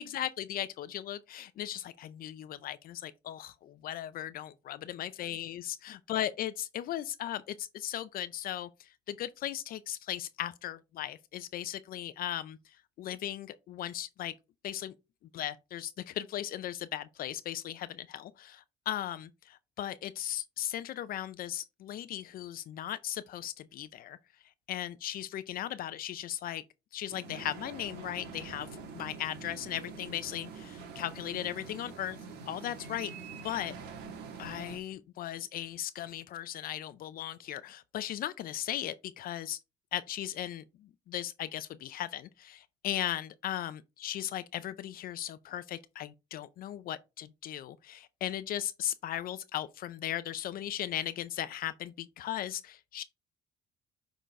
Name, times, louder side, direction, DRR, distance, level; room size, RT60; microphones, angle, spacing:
voice 1, 0.0-14.3 14.6-14.9 15.3-24.2 24.7-26.6 26.9-32.2 32.5-33.1 33.4-33.7 34.4-39.6 39.9-53.0, left 12 dB, 60° left, 0.5 m, -37 dB
sound 1, 27.1-34.8, right 5 dB, 80° right, 1.4 m, -45 dB
6.4 x 3.8 x 5.1 m
cardioid pair, 110°, 17 cm